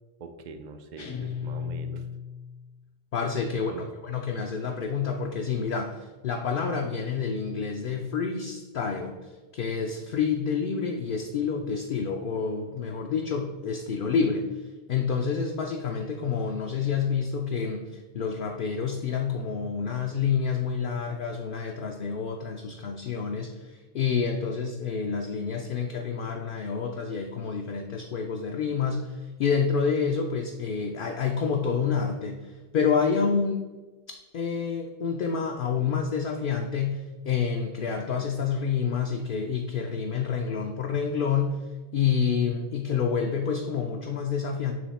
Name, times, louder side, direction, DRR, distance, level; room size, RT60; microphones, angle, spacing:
voice 1, 0.2-2.1 3.7-3.9, right 4 dB, 55° right, 7 dB, 0.6 m, -43 dB
sound 1, 1.0-2.7, left 7 dB, 80° left, 1.3 m, -35 dB
voice 2, 3.1-9.1 9.5-14.5 14.9-33.6 34.3-41.6 41.9-44.7, left 6 dB, 60° left, 2 dB, 0.6 m, -28 dB
7.7 x 3.2 x 4.1 m, 1.2 s
omnidirectional pair, 1.2 m